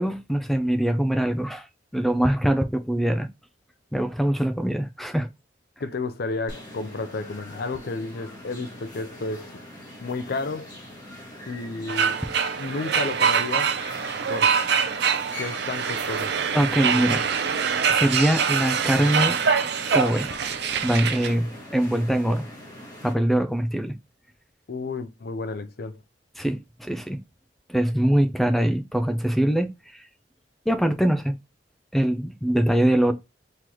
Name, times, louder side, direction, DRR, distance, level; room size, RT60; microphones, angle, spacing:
voice 1, 0.0-1.7 1.9-3.3 3.9-5.3 16.5-17.3 17.9-19.4 19.9-20.3 20.8-22.5 23.0-23.9 26.4-27.2 27.7-30.0 30.7-31.3 31.9-33.1, right 1 dB, ahead, 0.5 m, -23 dB
voice 2, 5.8-9.5 10.0-10.7 11.5-12.2 12.6-13.7 14.3-14.6 15.4-16.3 24.7-26.0, left 3 dB, 60° left, 0.6 m, -31 dB
sound 1, 6.5-23.1, left 1 dB, 20° left, 1.8 m, -41 dB
sound 2, 11.9-21.3, right 6 dB, 65° right, 0.5 m, -24 dB
3.9 x 3.1 x 3.0 m
head